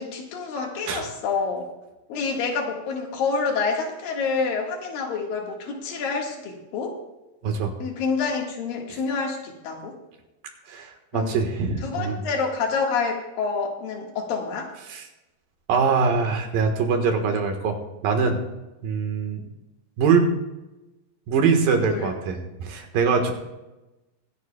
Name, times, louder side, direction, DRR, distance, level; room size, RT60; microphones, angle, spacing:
voice 1, 0.0-1.7 2.1-7.0 7.8-10.0 11.1-11.3 11.8-14.7 21.7-22.1, left 4 dB, 85° left, 0 dB, 3.5 m, -28 dB
voice 2, 10.7-12.2 14.9-15.0 15.7-18.4 18.8-19.4 20.0-20.3 21.3-23.3, right 5 dB, 90° right, 4 dB, 3.1 m, -23 dB
25.0 x 9.3 x 2.3 m, 1.0 s
omnidirectional pair, 3.9 m